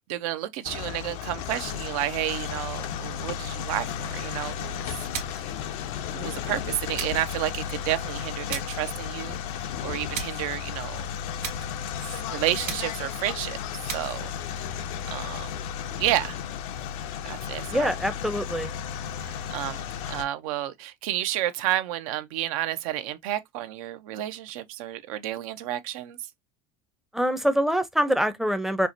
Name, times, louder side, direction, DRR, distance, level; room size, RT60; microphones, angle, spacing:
voice 1, 0.1-4.8 6.1-9.4 9.8-11.1 12.0-13.6 13.9-14.3 15.1-15.5 16.0-16.4 17.2-17.9 19.5-26.2, right 13 dB, 75° right, 0.6 m, -31 dB
sound 1, 0.6-20.2, left 8 dB, 70° left, 0.6 m, -34 dB
sound 2, 5.1-5.6 6.9-7.3 8.5-8.9 10.1-10.5 11.4-11.8 12.6-13.1 13.9-14.2, right 7 dB, 55° right, 1.5 m, -36 dB
voice 2, 17.7-18.7 27.1-28.9, equal, ahead, 0.5 m, -25 dB
4.5 x 2.1 x 2.5 m
supercardioid pair, 100°, 18 cm